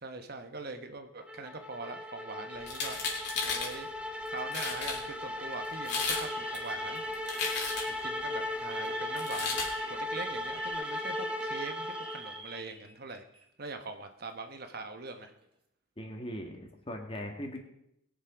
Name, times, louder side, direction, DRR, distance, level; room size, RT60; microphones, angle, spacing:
voice 1, 0.0-3.0 3.4-3.9 4.3-7.0 8.0-13.2 13.6-15.3, right 3 dB, 50° right, 7 dB, 1.1 m, -42 dB
sound 1, 1.3-12.6, left 1 dB, 5° right, 0.9 m, -37 dB
sound 2, 2.6-3.7 4.3-4.4 4.5-5.0 5.7-6.3 6.5-8.0 9.2-9.7, left 4 dB, 55° left, 3.2 m, -34 dB
Alarm, 3.0-3.5 4.4-4.7 5.1-5.3 5.9-13.4 13.7-13.8 14.8-15.5, right 4 dB, 25° right, 2.0 m, -49 dB
voice 2, 16.0-17.6, equal, 25° left, 3 dB, 2.0 m, -40 dB
20.5 x 7.4 x 5.1 m, 0.77 s
head